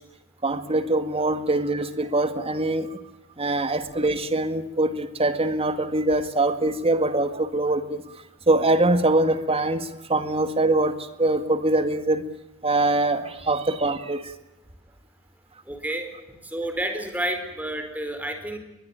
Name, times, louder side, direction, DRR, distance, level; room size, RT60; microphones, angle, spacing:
voice 1, 0.4-2.9 3.4-8.0 8.5-9.8 10.1-10.9 11.2-12.2 12.6-14.2, right 2 dB, 30° right, 10 dB, 1.9 m, -23 dB
voice 2, 15.7-16.1 16.4-18.6, right 1 dB, 10° right, 6 dB, 4.5 m, -30 dB
22.5 x 21.0 x 9.0 m, 0.97 s
head